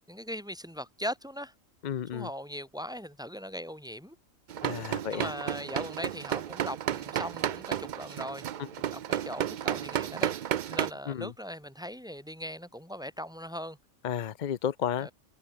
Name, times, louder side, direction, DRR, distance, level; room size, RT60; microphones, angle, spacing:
voice 1, 0.0-1.5 2.1-4.2 5.1-8.4 8.9-13.8 15.0-15.1, equal, 5° right, 2.3 m, -39 dB
voice 2, 1.8-2.3 4.6-5.3 8.6-8.7 11.1-11.3 14.0-15.1, left 9 dB, 50° left, 0.5 m, -32 dB
sound 1, 4.5-10.9, right 10 dB, 85° right, 0.4 m, -32 dB
omnidirectional pair, 1.4 m